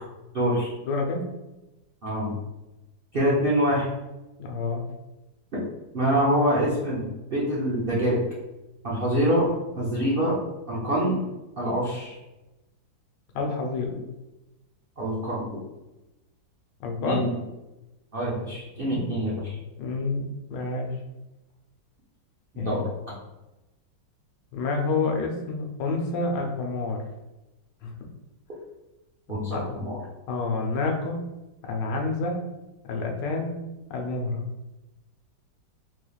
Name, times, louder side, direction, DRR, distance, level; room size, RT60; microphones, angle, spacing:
voice 1, 0.3-0.7 2.0-2.3 3.1-3.9 5.5-5.6 5.9-8.2 8.8-9.5 9.8-10.3 10.7-11.1 11.6-12.2 15.0-15.6 17.0-17.3 18.1-19.6 22.5-22.8 29.3-30.0, equal, 65° right, -6 dB, 0.5 m, -25 dB
voice 2, 0.8-1.3 4.4-4.8 13.3-14.0 16.8-17.2 18.9-19.1 19.8-20.9 22.6-22.8 24.5-27.0 27.8-28.1 29.5-29.7 30.3-31.2 31.6-32.4 32.8-33.6 33.9-34.4, left 3 dB, 75° left, 2 dB, 1.3 m, -28 dB
4.1 x 3.2 x 2.3 m, 1.0 s
omnidirectional pair, 2.0 m